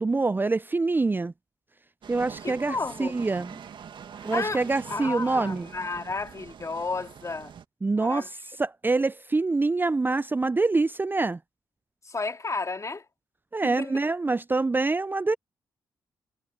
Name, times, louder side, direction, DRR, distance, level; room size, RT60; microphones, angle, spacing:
voice 1, 0.0-1.3 2.1-3.6 4.2-5.7 7.8-8.2 8.6-11.4 13.5-15.4, right 3 dB, 20° right, 0.5 m, -25 dB
sound 1, 2.0-7.6, right 7 dB, 65° right, 2.2 m, -44 dB
voice 2, 2.4-3.2 4.2-7.5 8.0-8.3 12.0-13.1 13.6-13.9, left 3 dB, 35° left, 2.7 m, -32 dB
supercardioid pair, 50°, 9 cm